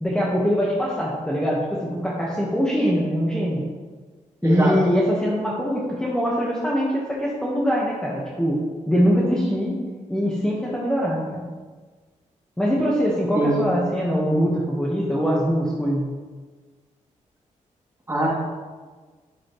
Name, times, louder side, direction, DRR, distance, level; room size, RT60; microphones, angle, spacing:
voice 1, 0.0-3.6 4.4-8.6 8.9-9.8 10.1-11.4 12.6-16.1, equal, 5° left, -5 dB, 1.2 m, -22 dB
voice 2, 4.4-4.8 13.3-13.7 18.1-18.3, right 1 dB, 20° right, -5 dB, 2.4 m, -22 dB
9.3 x 6.7 x 3.1 m, 1.4 s
cardioid pair, 110°, 13 cm